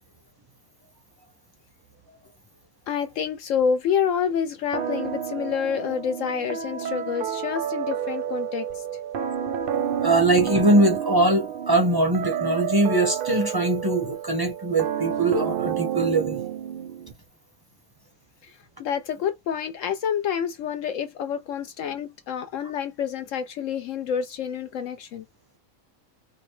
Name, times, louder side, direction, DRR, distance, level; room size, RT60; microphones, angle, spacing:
voice 1, 2.9-8.8 18.4-25.2, left 7 dB, 70° left, 0.9 m, -28 dB
sound 1, 4.7-17.1, right 9 dB, 85° right, 0.4 m, -30 dB
voice 2, 10.0-16.4, right 2 dB, 25° right, 0.6 m, -22 dB
4.8 x 2.1 x 3.1 m
omnidirectional pair, 1.5 m